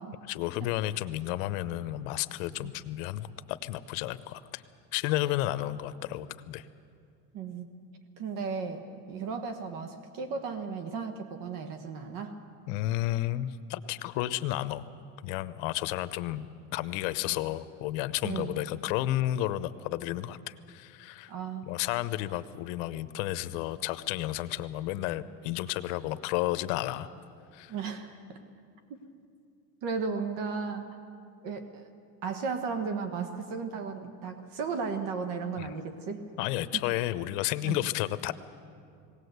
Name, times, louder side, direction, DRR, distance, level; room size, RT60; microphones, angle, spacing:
voice 1, 0.3-4.6 4.9-6.7 12.7-14.8 15.2-16.5 16.7-21.3 21.7-27.1 27.5-27.7 35.6-35.7 36.4-38.3, left 15 dB, 75° left, 14 dB, 0.9 m, -32 dB
voice 2, 7.3-7.7 8.2-8.8 9.1-12.4 18.2-18.5 21.3-21.7 27.7-28.4 28.9-29.0 29.8-31.0 31.4-31.9 32.2-36.3 37.6-37.8, right 5 dB, 55° right, 8 dB, 1.4 m, -35 dB
19.5 x 18.0 x 8.1 m, 2.4 s
cardioid pair, 140°, 39 cm